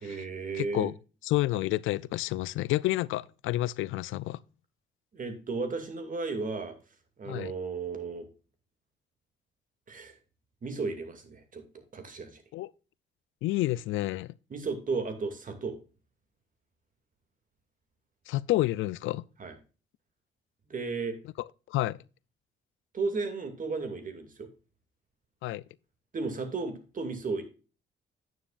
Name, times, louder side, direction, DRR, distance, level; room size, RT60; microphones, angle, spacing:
voice 1, 0.0-0.9 5.1-6.7 7.2-8.3 9.9-10.2 10.6-12.4 14.5-15.8 19.4-19.5 20.7-21.2 22.9-24.5 26.1-27.4, right 4 dB, 40° right, 2.4 m, -34 dB
voice 2, 0.6-0.9 1.2-4.4 7.2-7.5 12.5-12.7 13.4-14.3 18.3-19.2 21.7-22.0 25.4-25.6, left 16 dB, 85° left, 0.4 m, -29 dB
9.6 x 9.1 x 2.5 m
cardioid pair, 90°, 20 cm